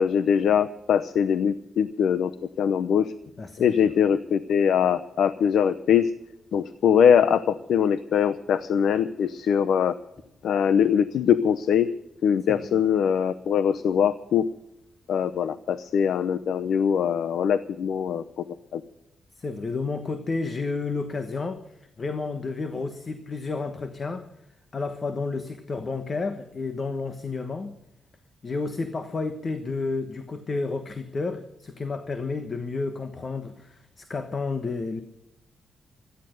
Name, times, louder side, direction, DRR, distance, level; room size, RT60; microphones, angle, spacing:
voice 1, 0.0-2.3 2.6-3.1 3.6-6.1 6.5-9.9 10.4-11.9 12.2-14.4 15.1-18.4 18.7-18.8, left 8 dB, 75° left, 13 dB, 0.7 m, -22 dB
voice 2, 3.4-3.7 12.5-12.8 19.4-24.3 24.7-27.7 28.4-35.0, left 3 dB, 30° left, 9 dB, 1.3 m, -31 dB
17.0 x 13.0 x 6.5 m, 0.86 s
wide cardioid pair, 145°, 0 cm